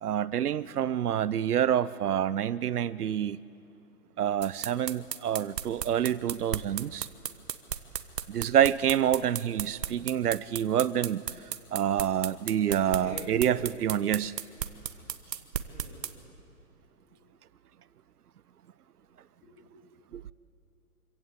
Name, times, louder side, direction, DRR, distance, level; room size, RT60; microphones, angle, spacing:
voice 1, 0.0-3.4 4.2-7.1 8.3-11.2 11.7-14.3 20.1-20.2, right 10 dB, 65° right, 0.7 m, -27 dB
sound 1, 4.4-16.1, right 8 dB, 85° right, 1.4 m, -34 dB
voice 2, 13.0-13.7 15.3-16.1 16.9-17.2 19.4-19.5, left 2 dB, 15° left, 3.2 m, -46 dB
25.5 x 16.5 x 8.2 m
hypercardioid pair, 175°, 49 cm